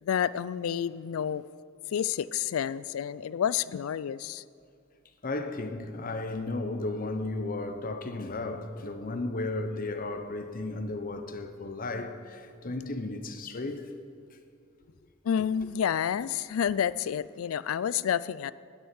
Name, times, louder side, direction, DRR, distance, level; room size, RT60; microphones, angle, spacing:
voice 1, 0.0-1.4 1.9-4.4 15.2-18.5, left 8 dB, 80° left, 0.3 m, -29 dB
voice 2, 5.2-13.9, left 2 dB, 45° left, 0.9 m, -34 dB
11.0 x 7.0 x 9.2 m
head